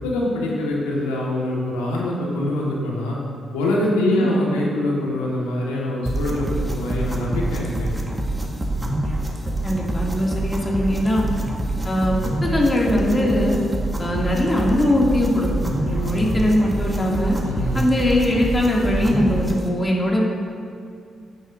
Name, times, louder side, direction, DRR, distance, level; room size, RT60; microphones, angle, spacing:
voice 1, 0.0-3.2 3.5-8.2 11.2-11.4 16.0-16.3 17.4-17.8, left 1 dB, 90° left, -4 dB, 1.6 m, -24 dB
voice 2, 4.0-4.3 9.6-11.2 11.8-12.2 12.4-13.6 14.0-17.4 17.7-20.2, left 1 dB, 30° left, -3 dB, 2.4 m, -21 dB
sound 1, 6.1-19.7, right 1 dB, 20° right, 1.5 m, -26 dB
12.0 x 8.9 x 2.7 m, 2.3 s
hypercardioid pair, 45°, 0 cm